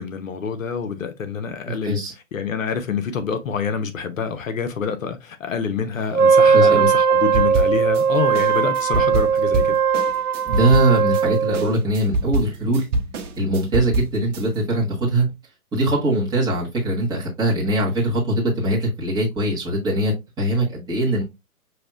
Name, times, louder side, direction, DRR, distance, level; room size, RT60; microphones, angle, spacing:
voice 1, 0.0-2.0 2.3-9.7, left 6 dB, 60° left, 0.8 m, -27 dB
voice 2, 1.6-2.1 6.5-6.9 10.4-12.8 13.4-15.3 15.7-21.2, right 1 dB, 10° right, 1.3 m, -22 dB
Wind instrument woodwind instrument, 6.1-11.7, right 6 dB, 80° right, 0.6 m, -18 dB
sound 1, 7.3-8.0 8.3-11.2 11.5-14.4, right 2 dB, 55° right, 1.0 m, -25 dB
6.0 x 2.8 x 2.4 m
figure-of-eight pair, 135°, 44 cm